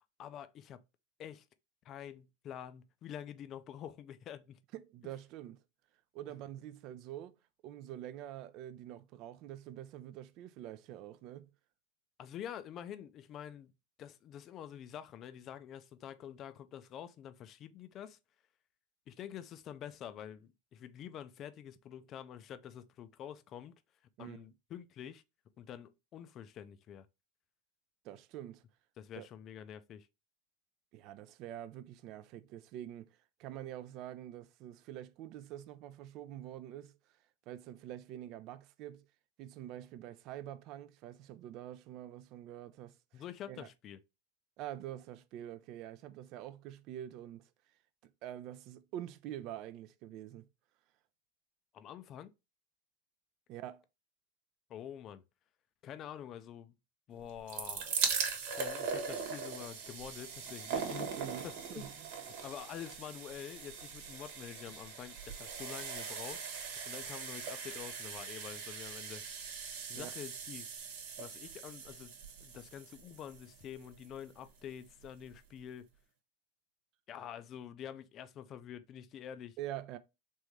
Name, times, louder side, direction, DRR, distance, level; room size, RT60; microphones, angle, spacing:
voice 1, 0.2-0.8 1.2-1.4 1.8-4.6 12.2-13.7 14.0-18.2 19.1-23.7 24.2-25.2 25.6-27.1 29.0-30.1 43.1-44.0 51.7-52.3 54.7-55.2 55.8-56.7 57.1-57.9 58.5-61.1 61.4-62.0 62.4-66.4 66.9-69.2 69.9-70.7 71.2-72.1 72.4-75.9 77.1-79.6, left 9 dB, 40° left, 0.4 m, -47 dB
voice 2, 4.7-5.6 6.1-7.4 7.6-11.5 24.2-24.4 28.0-28.6 29.2-29.3 30.9-37.0 37.5-39.0 39.4-43.7 44.6-47.5 48.2-50.5 53.5-53.8 61.2-62.1 69.9-70.1 79.6-80.0, right 12 dB, 50° right, 0.4 m, -46 dB
sound 1, 57.2-74.3 75.0-75.1 75.3-75.4, right 6 dB, 65° right, 1.1 m, -40 dB
3.5 x 2.6 x 3.1 m
hypercardioid pair, 110°, 0 cm